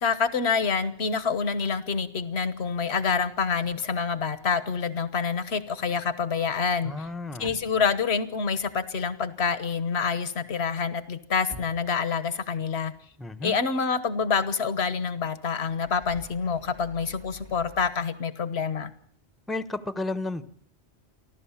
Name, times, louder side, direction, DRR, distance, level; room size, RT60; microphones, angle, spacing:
voice 1, 0.0-6.9 7.4-12.9 13.4-18.9, left 5 dB, 75° left, 13 dB, 1.5 m, -27 dB
sound 1, 2.3-5.0 5.2-10.4 10.7-12.8 13.1-13.2 15.4-17.9, right 1 dB, 70° right, 2.8 m, -51 dB
voice 2, 6.8-7.5 13.2-13.6 19.5-20.4, left 2 dB, ahead, 11 dB, 0.9 m, -32 dB
29.0 x 12.0 x 7.3 m, 0.65 s
omnidirectional pair, 1.1 m